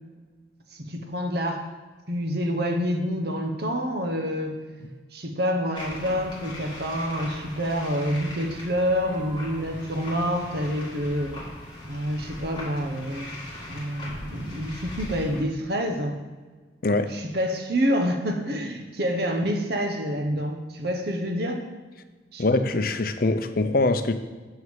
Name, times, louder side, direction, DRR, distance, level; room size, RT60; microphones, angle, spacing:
voice 1, 0.7-1.7 2.1-4.6 5.1-11.4 11.8-13.3 13.7-16.2 17.1-21.6 22.3-22.4, equal, 55° right, 4 dB, 1.2 m, -27 dB
sound 1, 5.7-15.4, left 1 dB, 25° left, 2.0 m, -39 dB
voice 2, 16.8-17.1 22.4-24.1, left 2 dB, 50° left, 9 dB, 0.6 m, -23 dB
7.2 x 6.4 x 7.3 m, 1.4 s
head